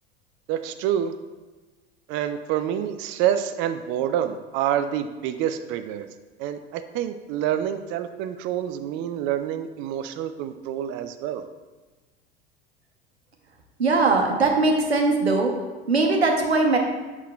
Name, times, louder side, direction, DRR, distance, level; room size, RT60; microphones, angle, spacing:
voice 1, 0.5-1.1 2.1-6.1 6.4-11.5, right 10 dB, 40° right, 9 dB, 0.4 m, -27 dB
voice 2, 13.8-15.5 15.9-16.8, right 3 dB, 90° right, 2 dB, 0.9 m, -20 dB
8.2 x 5.9 x 2.2 m, 1.3 s
figure-of-eight pair, 75°, 31 cm